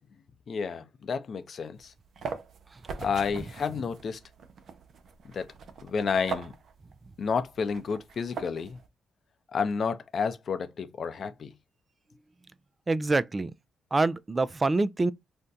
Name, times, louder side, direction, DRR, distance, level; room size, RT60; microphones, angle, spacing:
voice 1, 0.5-1.9 3.0-4.2 5.3-5.5 5.8-6.5 7.2-8.8 9.5-11.5, left 5 dB, 55° left, 0.6 m, -30 dB
sound 1, 1.8-8.9, right 5 dB, 65° right, 0.6 m, -42 dB
voice 2, 12.9-13.5 13.9-15.1, right 3 dB, 30° right, 0.3 m, -26 dB
2.6 x 2.2 x 3.7 m
supercardioid pair, 65°, 0 cm